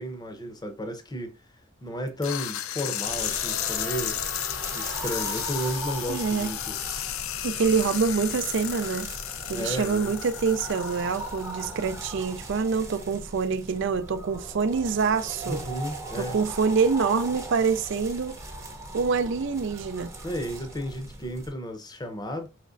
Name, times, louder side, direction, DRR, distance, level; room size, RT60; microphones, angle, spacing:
voice 1, 0.0-1.4 1.8-4.5 4.7-6.8 9.5-10.1 15.4-16.4 20.2-22.5, equal, 20° left, 0.7 m, -33 dB
sound 1, 2.2-12.0, left 12 dB, 90° left, 0.4 m, -33 dB
sound 2, 3.1-21.5, right 2 dB, 15° right, 0.7 m, -39 dB
voice 2, 6.1-6.5 7.4-9.1 9.5-15.6 16.1-18.4 18.9-20.1, right 5 dB, 65° right, 0.4 m, -26 dB
4.9 x 3.2 x 2.5 m
head